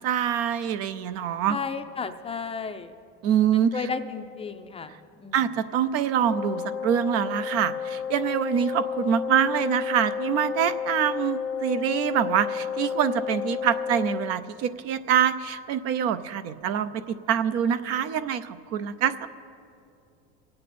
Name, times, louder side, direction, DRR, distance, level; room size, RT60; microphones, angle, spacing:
voice 1, 0.0-1.6 3.2-3.7 5.3-19.3, right 9 dB, 55° right, 12 dB, 0.7 m, -25 dB
voice 2, 1.5-2.9 3.5-5.4, left 5 dB, 20° left, 8 dB, 0.5 m, -33 dB
Wind instrument woodwind instrument, 6.2-14.4, left 7 dB, 50° left, 0.8 m, -31 dB
24.5 x 8.8 x 4.2 m, 2.5 s
supercardioid pair, 125°, 30 cm